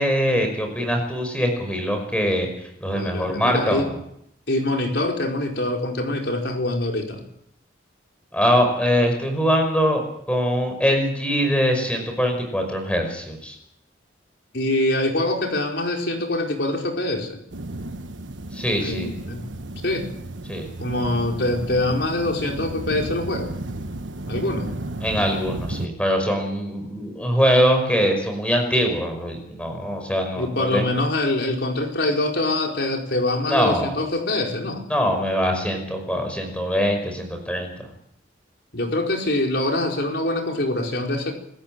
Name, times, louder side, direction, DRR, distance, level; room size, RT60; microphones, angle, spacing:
voice 1, 0.0-2.5 2.8-3.8 8.3-13.6 18.5-19.1 20.5-20.7 25.0-30.9 33.5-33.9 34.9-37.7, equal, 5° left, 4 dB, 5.3 m, -22 dB
voice 2, 2.9-3.9 4.5-7.2 14.5-17.4 18.8-19.4 19.8-20.1 20.8-23.5 24.3-24.7 30.4-34.8 38.7-41.3, left 1 dB, 65° left, 1 dB, 4.7 m, -24 dB
sound 1, 17.5-25.9, right 2 dB, 90° right, 1.3 m, -33 dB
26.5 x 14.5 x 7.6 m, 0.74 s
head